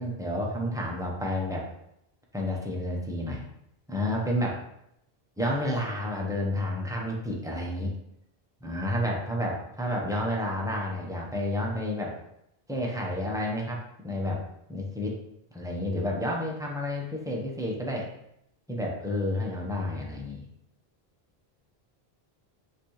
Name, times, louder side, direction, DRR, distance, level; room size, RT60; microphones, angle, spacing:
voice 1, 0.0-1.7 2.3-3.4 3.9-4.6 5.4-7.9 8.6-12.1 12.7-14.4 14.7-15.2 15.5-18.1 18.7-20.4, left 1 dB, 5° right, -2 dB, 0.8 m, -30 dB
5.8 x 2.9 x 3.1 m, 0.78 s
omnidirectional pair, 1.0 m